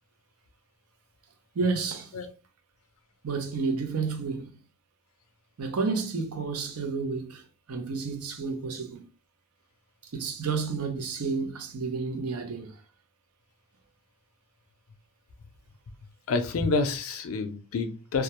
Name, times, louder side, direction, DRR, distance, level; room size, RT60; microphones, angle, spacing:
voice 1, 1.5-2.1 3.2-4.5 5.6-9.1 10.1-12.8, right 4 dB, 80° right, 0.6 m, -31 dB
voice 2, 16.3-18.2, left 3 dB, 70° left, 0.4 m, -28 dB
2.3 x 2.0 x 2.8 m
head